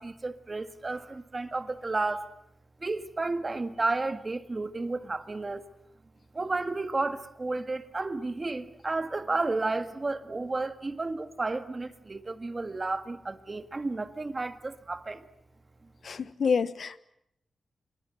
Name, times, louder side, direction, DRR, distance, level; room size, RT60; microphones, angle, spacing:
voice 1, 0.0-2.3 2.8-5.6 6.3-15.3, right 3 dB, 30° right, 1.8 m, -32 dB
voice 2, 16.0-17.0, left 5 dB, 65° left, 1.1 m, -28 dB
26.0 x 23.5 x 7.8 m
wide cardioid pair, 125°, 0 cm